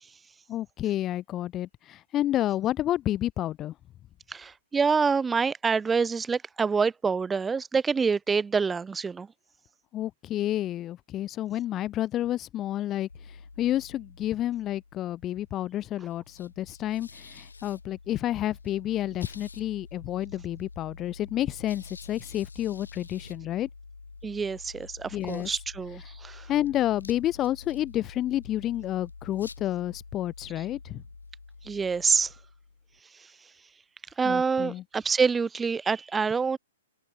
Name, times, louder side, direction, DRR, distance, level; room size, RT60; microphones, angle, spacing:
voice 1, 0.5-3.7 9.9-23.7 25.1-25.5 26.5-31.0 34.2-34.8, left 13 dB, 25° left, 1.1 m, -30 dB
voice 2, 4.3-9.3 24.2-26.4 31.7-32.3 34.2-36.6, right 5 dB, 10° right, 1.4 m, -26 dB
sound 1, 13.1-33.0, left 4 dB, 90° left, 5.1 m, -47 dB
hypercardioid pair, 125°, 0 cm